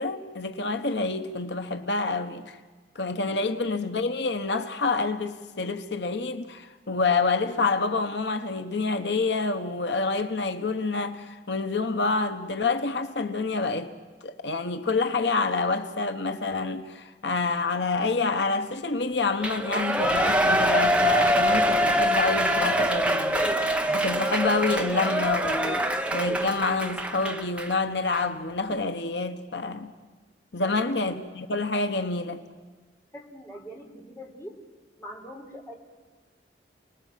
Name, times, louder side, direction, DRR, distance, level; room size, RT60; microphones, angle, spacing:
voice 1, 0.0-2.6 2.9-13.9 14.2-23.6 23.9-30.0 30.5-32.4, left 3 dB, 85° left, 1.3 m, -27 dB
Shout / Cheering, 19.4-27.7 28.1-28.2, equal, 5° right, 1.1 m, -24 dB
voice 2, 30.6-31.0 33.1-34.6 35.0-35.7, equal, 15° left, 3.9 m, -43 dB
29.5 x 20.0 x 7.6 m
head